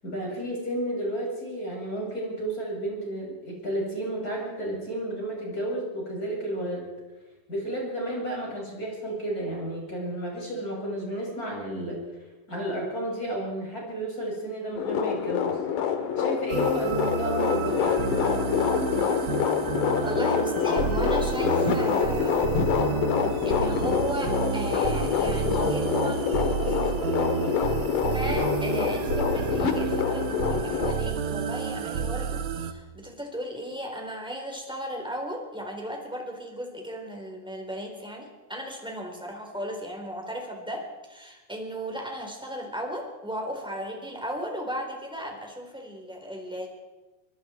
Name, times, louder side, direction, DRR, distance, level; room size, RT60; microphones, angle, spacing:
voice 1, 0.0-6.9 7.5-12.0 12.5-15.6 16.2-17.9, right 1 dB, 20° left, -2 dB, 7.6 m, -32 dB
sound 1, 14.8-30.9, left 7 dB, 65° left, 3.2 m, -26 dB
sound 2, 16.5-32.7, right 7 dB, 85° right, 1.2 m, -30 dB
voice 2, 20.0-22.6 23.4-27.0 27.6-27.8 28.1-46.7, equal, ahead, 1 dB, 4.0 m, -35 dB
24.5 x 24.0 x 4.7 m, 1.2 s
omnidirectional pair, 4.2 m